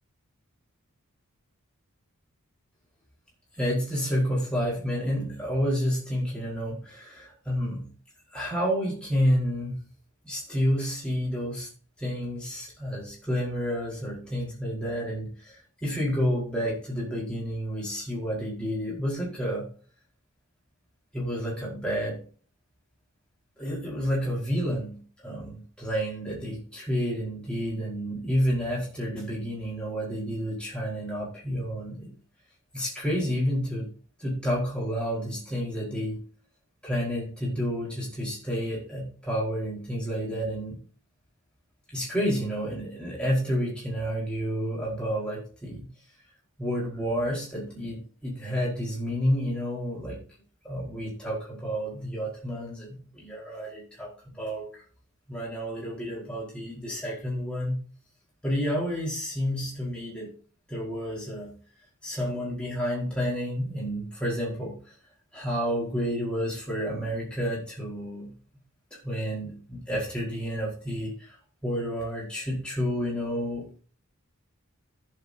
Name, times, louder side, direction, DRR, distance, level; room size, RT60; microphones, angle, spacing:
voice 1, 3.6-7.9 8.3-9.8 10.2-11.7 12.0-19.7 21.1-22.2 23.6-32.1 32.7-33.9 34.2-36.2 36.8-40.8 41.9-45.9 46.6-50.2 50.6-54.8 55.3-57.8 58.4-60.3 60.7-61.5 62.0-64.8 65.3-68.3 68.9-71.3 71.6-73.8, equal, 5° left, -5 dB, 4.8 m, -30 dB
15.0 x 7.5 x 2.9 m, 0.42 s
head